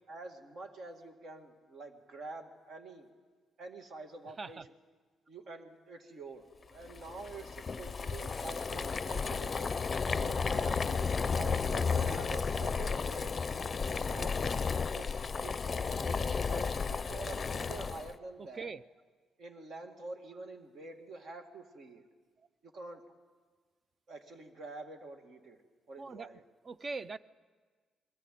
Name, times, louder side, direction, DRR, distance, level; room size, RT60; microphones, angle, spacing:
voice 1, 0.1-3.1 3.6-4.6 5.3-9.8 10.1-14.6 14.9-15.1 15.4-18.7 19.4-22.0 22.6-23.0 24.1-25.6 25.9-26.4, right 3 dB, 60° right, 5 dB, 2.1 m, -47 dB
voice 2, 4.2-4.6 18.4-18.8 22.4-22.5 26.0-26.3 26.6-27.2, right 4 dB, 40° right, 16 dB, 0.6 m, -42 dB
Boiling, 6.9-18.1, left 5 dB, 35° left, 0.5 m, -33 dB
21.5 x 14.0 x 9.2 m, 1.5 s
cardioid pair, 90°, 0 cm